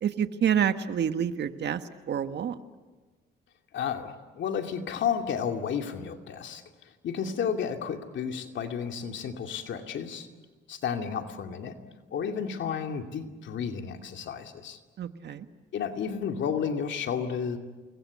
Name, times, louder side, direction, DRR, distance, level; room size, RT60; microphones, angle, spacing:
voice 1, 0.0-1.8 2.1-2.6 15.0-15.4, right 8 dB, 60° right, 9 dB, 1.5 m, -27 dB
voice 2, 3.7-6.6 7.0-10.3 10.7-11.8 12.1-14.8 15.7-17.6, left 7 dB, 70° left, 5 dB, 2.6 m, -32 dB
29.0 x 22.0 x 8.5 m, 1.3 s
cardioid pair, 90°, 20 cm